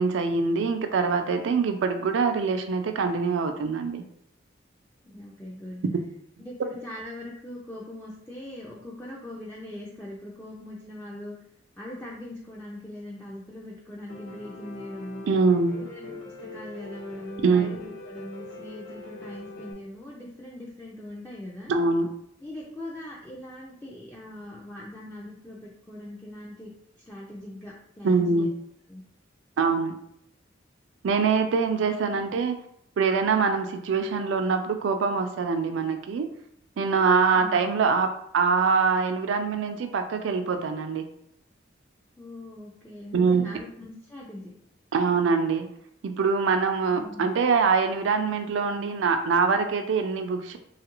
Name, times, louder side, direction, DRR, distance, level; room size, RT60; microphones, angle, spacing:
voice 1, 0.0-4.0 15.3-15.8 17.4-17.7 21.7-22.1 28.0-28.5 29.6-30.0 31.0-32.5 33.0-36.3 36.8-38.1 38.3-41.1 43.1-43.4 44.9-45.7 46.0-50.6, right 5 dB, 75° right, 7 dB, 0.4 m, -24 dB
voice 2, 5.0-5.8 6.4-11.4 11.8-15.3 15.7-21.7 22.4-28.5 28.9-29.0 32.1-32.2 37.3-37.7 42.2-44.5 46.9-47.4, left 1 dB, 10° left, -5 dB, 0.4 m, -41 dB
Piano, 14.1-19.7, left 2 dB, 85° left, 0.9 m, -42 dB
3.2 x 2.4 x 2.9 m, 0.70 s
head